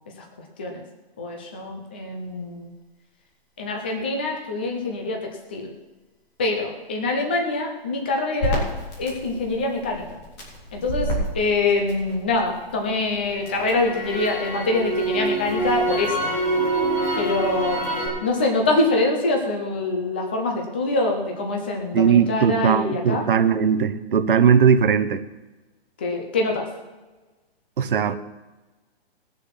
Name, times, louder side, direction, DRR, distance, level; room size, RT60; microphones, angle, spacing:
voice 1, 1.2-2.7 3.6-5.7 6.4-8.6 9.0-10.2 10.7-16.3 17.2-23.2 26.0-26.7, left 2 dB, 10° left, 1 dB, 0.5 m, -25 dB
Crackle, 8.4-12.5 12.9-18.1, right 1 dB, 25° left, 3.8 m, -26 dB
voice 2, 21.9-25.2 27.8-28.2, right 7 dB, 60° right, 9 dB, 1.0 m, -19 dB
20.0 x 6.9 x 5.9 m, 1.2 s
hypercardioid pair, 175°, 31 cm